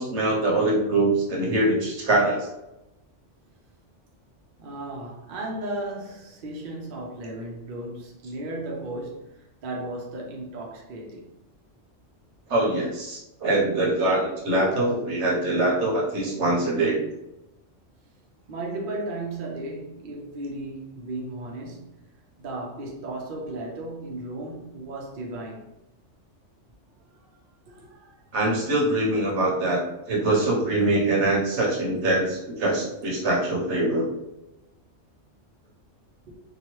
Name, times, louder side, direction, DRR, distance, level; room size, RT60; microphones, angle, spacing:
voice 1, 0.0-2.5 12.5-17.0 28.3-34.0, right 2 dB, 70° right, 1.1 m, -23 dB
voice 2, 4.6-11.3 13.8-14.0 18.5-21.9 22.4-25.7 27.1-27.4 27.7-28.1 36.3-36.4, right 2 dB, 55° right, 0.7 m, -35 dB
2.8 x 2.3 x 3.0 m
omnidirectional pair, 1.2 m